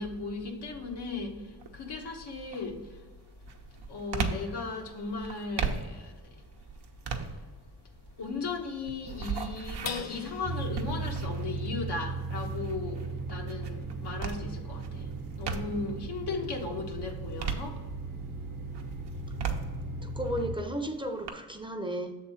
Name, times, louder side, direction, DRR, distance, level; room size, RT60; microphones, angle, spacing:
voice 1, 0.0-3.1 3.7-6.4 7.1-7.4 8.2-17.9 19.0-19.1, left 4 dB, 85° left, 1.2 m, -37 dB
sound 1, 1.6-2.0 2.5-16.0 16.4-18.3 18.7-21.3, right 5 dB, 85° right, 0.8 m, -38 dB
sound 2, 9.8-16.5 17.0-17.1 17.5-18.0, left 5 dB, 40° left, 0.6 m, -47 dB
sound 3, 10.4-20.6, right 3 dB, 60° right, 0.9 m, -37 dB
voice 2, 15.7-16.1 20.0-22.1, right 1 dB, 10° right, 0.6 m, -34 dB
7.2 x 3.6 x 5.6 m
wide cardioid pair, 90°, 40 cm